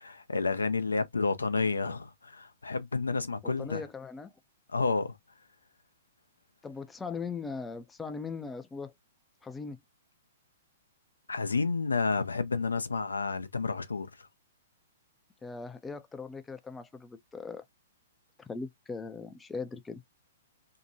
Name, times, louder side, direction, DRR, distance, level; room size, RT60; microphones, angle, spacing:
voice 1, 0.0-3.8 4.7-5.2 11.3-14.3, left 4 dB, 85° left, 0.4 m, -30 dB
voice 2, 3.4-4.3 6.6-8.9 9.4-9.8 15.4-17.6 18.4-20.0, left 4 dB, 10° left, 0.3 m, -39 dB
2.7 x 2.2 x 2.6 m
hypercardioid pair, 120°, 0 cm